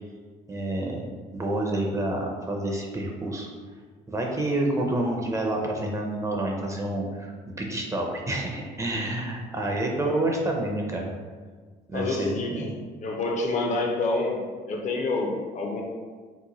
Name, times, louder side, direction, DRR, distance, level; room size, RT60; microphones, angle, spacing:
voice 1, 0.5-1.1 1.3-3.5 4.1-7.3 7.6-11.1 11.9-12.7, right 1 dB, 20° right, -1 dB, 0.5 m, -28 dB
voice 2, 11.9-12.7 13.0-15.8, left 2 dB, 45° left, 1 dB, 0.5 m, -28 dB
2.9 x 2.1 x 3.9 m, 1.5 s
cardioid pair, 110°, 17 cm